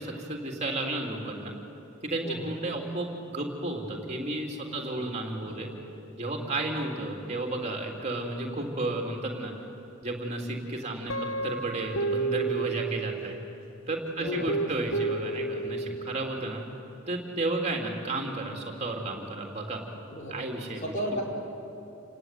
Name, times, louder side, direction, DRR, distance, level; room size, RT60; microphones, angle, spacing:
voice 1, 0.0-1.5 2.0-5.7 6.2-9.5 10.0-11.1 11.4-13.3 13.9-16.6 17.1-19.8 20.3-20.9, right 2 dB, 35° right, 1 dB, 3.6 m, -32 dB
voice 2, 4.6-5.1 5.4-5.8 6.4-6.7 14.2-14.5 15.6-16.0 20.1-20.5 20.8-21.2, equal, 35° left, 0 dB, 4.5 m, -37 dB
Guitar, 11.1-13.6 14.3-16.2, right 3 dB, 85° left, 1.2 m, -31 dB
29.5 x 18.0 x 9.5 m, 3.0 s
head